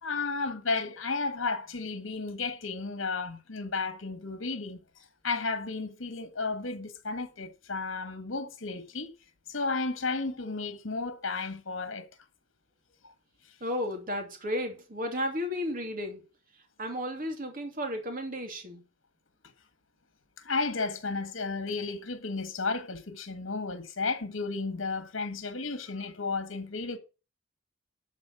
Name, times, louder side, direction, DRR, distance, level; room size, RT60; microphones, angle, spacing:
voice 1, 0.0-4.8 5.2-9.1 9.5-12.1 20.4-27.0, left 4 dB, 85° left, 1.6 m, -33 dB
voice 2, 13.6-16.2 16.8-18.8, equal, 45° right, 2.6 m, -33 dB
11.5 x 4.3 x 6.8 m
head